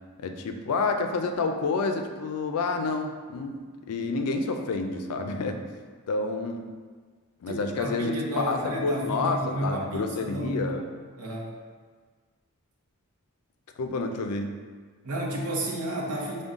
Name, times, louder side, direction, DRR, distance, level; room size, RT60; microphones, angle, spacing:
voice 1, 0.2-3.6 3.9-5.6 6.1-6.7 7.4-10.8 13.8-14.6, left 3 dB, 85° left, 5 dB, 0.4 m, -29 dB
voice 2, 7.5-10.9 11.2-11.5 15.0-16.4, right 1 dB, 85° right, 0 dB, 0.7 m, -32 dB
5.2 x 2.2 x 3.6 m, 1.5 s
head